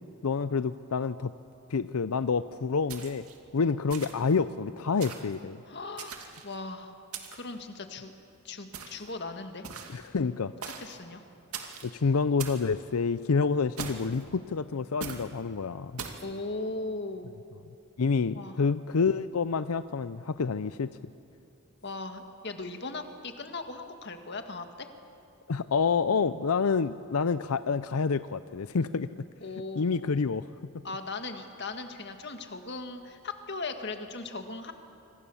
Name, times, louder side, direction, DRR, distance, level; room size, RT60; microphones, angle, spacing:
voice 1, 0.2-1.3 1.7-3.2 3.5-5.6 9.9-10.5 11.8-16.0 18.0-20.9 25.5-29.1 29.8-30.5, left 5 dB, 90° left, 13 dB, 0.6 m, -28 dB
sound 1, 2.9-3.4 3.9-4.3 5.0-5.4 6.0-6.5 7.1-7.5 8.7-9.1 9.6-10.1 10.6-11.0 11.5-11.9 12.4-12.7 13.8-14.2 15.0-15.3 16.0-16.3, right 6 dB, 90° right, 2.5 m, -40 dB
voice 2, 5.7-6.2 6.4-7.0 7.3-8.1 8.4-9.7 10.8-11.2 16.2-17.3 18.3-18.6 21.8-24.9 29.4-30.0 30.8-34.7, left 3 dB, 50° left, 6 dB, 1.9 m, -38 dB
26.0 x 26.0 x 7.2 m, 2.7 s
head